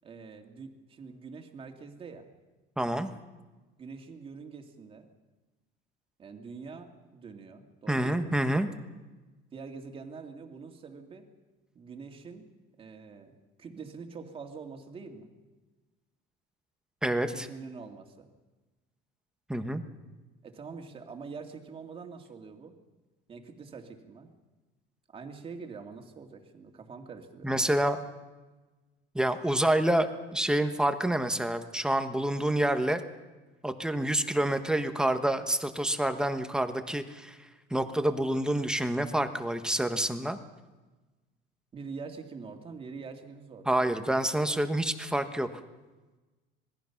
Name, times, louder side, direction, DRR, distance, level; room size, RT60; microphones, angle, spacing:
voice 1, 0.0-2.3 3.8-5.1 6.2-8.4 9.5-11.3 11.7-12.5 12.8-13.3 13.6-15.3 17.3-18.3 20.4-22.8 23.3-24.3 25.1-27.6 41.7-43.9, right 5 dB, 30° right, 4 dB, 2.3 m, -45 dB
voice 2, 2.8-3.1 7.9-8.7 17.0-17.5 19.5-19.8 27.4-28.0 29.1-33.0 33.6-37.4 37.7-40.4 43.7-45.5, right 1 dB, 5° right, 8 dB, 1.2 m, -28 dB
26.5 x 20.5 x 5.9 m, 1.2 s
cardioid pair, 155°, 19 cm